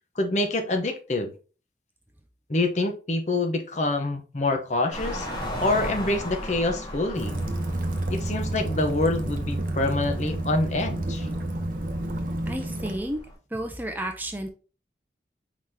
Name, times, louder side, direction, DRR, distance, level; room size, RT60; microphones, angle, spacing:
voice 1, 0.2-1.3 2.5-5.3 5.6-7.4 8.1-11.3, left 2 dB, 40° left, 4 dB, 0.7 m, -26 dB
sound 1, 4.9-13.3, left 1 dB, 25° left, 1.6 m, -37 dB
Waves surf / Splash splatter / Trickle dribble, 7.1-13.0, right 1 dB, 50° right, 0.7 m, -30 dB
voice 2, 12.5-13.2 13.5-14.5, right 1 dB, 10° right, 5 dB, 0.5 m, -31 dB
4.7 x 3.8 x 2.7 m, 0.35 s
head